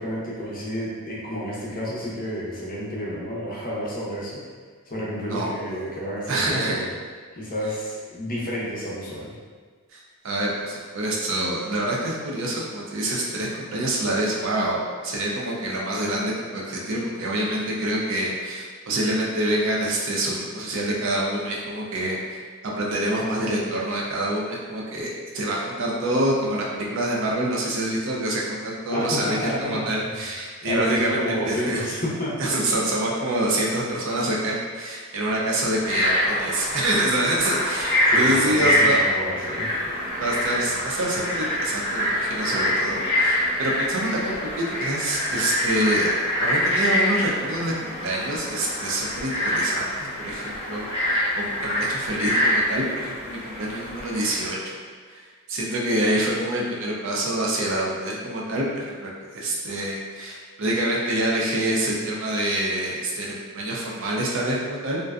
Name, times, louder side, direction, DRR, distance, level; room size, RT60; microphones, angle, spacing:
voice 1, 0.0-4.4 4.9-6.9 7.3-9.3 28.9-30.2 30.6-32.5 38.1-39.7, equal, 40° left, -5 dB, 0.5 m, -30 dB
voice 2, 6.3-6.9 9.9-32.0 32.4-39.0 40.2-46.1 46.4-49.9 50.2-54.8 55.1-55.2 55.5-65.0, right 1 dB, 60° right, -3 dB, 0.4 m, -26 dB
Frog, 35.7-54.5, left 1 dB, 25° right, 0.8 m, -25 dB
2.5 x 2.1 x 2.3 m, 1.5 s
head